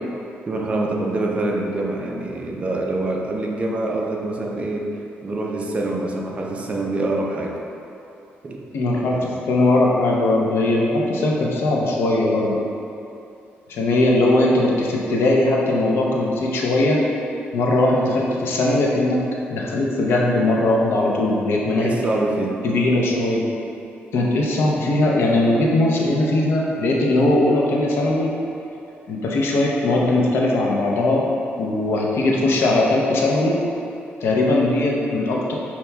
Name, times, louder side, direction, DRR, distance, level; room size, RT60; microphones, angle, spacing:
voice 1, 0.5-4.9 5.2-7.6 8.4-8.7 9.1-9.4 21.6-22.6, right 2 dB, 30° right, 0 dB, 0.4 m, -25 dB
voice 2, 8.7-12.6 13.7-17.0 17.5-19.2 19.5-21.9 22.6-23.5 24.1-28.3 29.1-31.3 31.6-33.6 34.2-35.5, left 2 dB, 75° left, -2 dB, 0.5 m, -19 dB
5.5 x 2.9 x 2.2 m, 2.8 s
cardioid pair, 135°, 4 cm